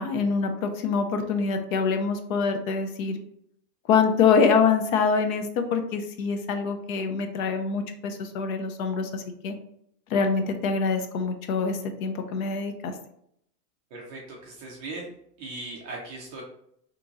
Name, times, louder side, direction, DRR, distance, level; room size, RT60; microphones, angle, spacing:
voice 1, 0.0-3.2 3.9-9.5 10.1-12.9, left 5 dB, 60° left, 7 dB, 0.7 m, -25 dB
voice 2, 13.9-15.1 15.4-16.4, right 2 dB, 25° right, -3 dB, 0.4 m, -38 dB
2.9 x 2.3 x 3.8 m, 0.71 s
supercardioid pair, 140°, 49 cm